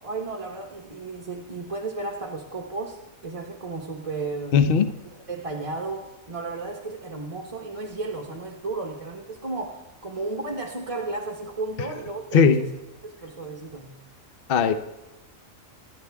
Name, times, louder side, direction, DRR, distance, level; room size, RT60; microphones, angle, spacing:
voice 1, 0.0-4.7 5.3-12.7 13.0-14.0, right 3 dB, 25° right, 0 dB, 1.0 m, -34 dB
voice 2, 4.5-4.9 12.3-12.6 14.5-14.7, left 6 dB, 50° left, 10 dB, 0.8 m, -18 dB
26.0 x 11.0 x 3.5 m, 0.98 s
omnidirectional pair, 1.4 m